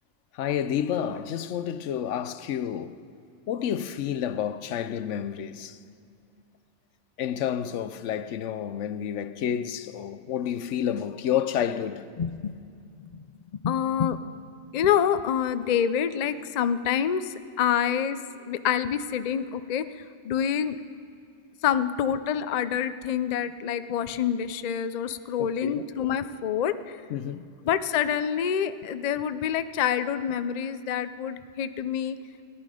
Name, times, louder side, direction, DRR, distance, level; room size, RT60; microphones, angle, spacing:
voice 1, 0.3-3.0 3.5-5.8 7.2-12.0 25.4-25.8 27.1-27.5, left 9 dB, 85° left, 1.0 m, -30 dB
voice 2, 12.2-12.6 13.0-13.2 13.6-14.2 14.7-18.2 18.4-20.8 21.6-27.0 27.6-32.2, left 8 dB, 55° left, 0.5 m, -27 dB
18.5 x 11.0 x 4.9 m
omnidirectional pair, 1.2 m